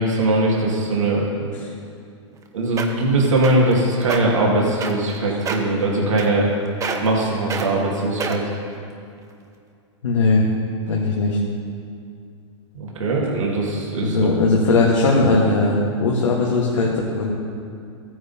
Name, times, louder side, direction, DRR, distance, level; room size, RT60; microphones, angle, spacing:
voice 1, 0.0-1.5 2.5-6.5 7.0-8.4 12.7-14.2, right 2 dB, 90° right, -4 dB, 2.1 m, -20 dB
sound 1, 2.3-2.4 2.8-3.1 3.4-3.7 4.0-4.2 4.8-5.2 5.5-5.7 6.2-6.5 6.8-7.2 7.5-7.7 8.2-8.6 9.2-9.3, right 5 dB, 20° right, 0.9 m, -26 dB
voice 2, 10.0-10.4 10.9-11.4 14.0-17.3, left 3 dB, 85° left, -3 dB, 1.4 m, -18 dB
14.5 x 9.4 x 2.8 m, 2.4 s
hypercardioid pair, 120°, 16 cm